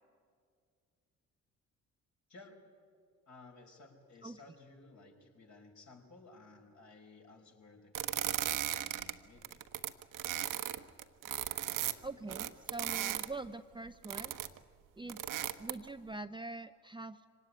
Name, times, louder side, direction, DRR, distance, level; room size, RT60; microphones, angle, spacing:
voice 1, 3.3-9.6, left 3 dB, 50° left, 1 dB, 5.4 m, -57 dB
sound 1, 7.9-9.1 9.4-13.3 14.0-14.6 15.1-15.9, right 12 dB, 60° right, 1.1 m, -36 dB
voice 2, 12.0-14.3 15.0-15.2 15.6-17.2, right 3 dB, 15° right, 9 dB, 0.6 m, -44 dB
24.5 x 17.5 x 9.8 m, 2.2 s
hypercardioid pair, 55°, 37 cm